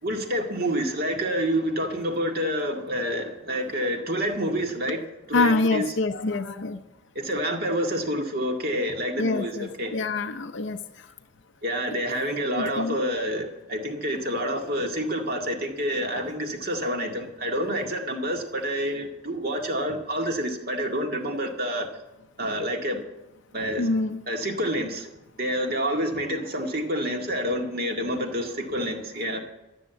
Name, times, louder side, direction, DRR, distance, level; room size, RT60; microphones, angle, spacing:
voice 1, 0.0-5.0 5.3-5.9 7.2-10.0 11.6-21.9 22.4-23.0 23.5-23.9 24.3-25.1 25.4-29.4, equal, 50° right, 2 dB, 2.0 m, -28 dB
voice 2, 5.3-6.8 9.2-11.1 11.9-12.0 12.6-13.0 16.1-16.3 23.8-24.2, left 3 dB, 65° left, 6 dB, 0.6 m, -26 dB
13.0 x 7.4 x 9.3 m, 0.98 s
head